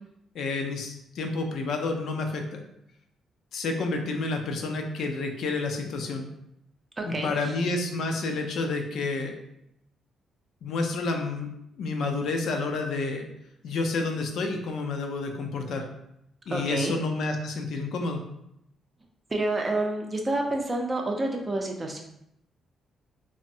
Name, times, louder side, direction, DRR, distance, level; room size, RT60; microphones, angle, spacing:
voice 1, 0.3-2.6 3.5-6.3 7.0-9.4 10.6-11.5 11.8-13.2 13.6-15.8 16.5-18.2, left 3 dB, 70° left, 4 dB, 0.4 m, -29 dB
voice 2, 7.0-7.3 16.5-16.9 19.3-22.0, right 2 dB, 25° right, 2 dB, 0.5 m, -28 dB
3.3 x 2.0 x 2.6 m, 0.78 s
cardioid pair, 90°, 0 cm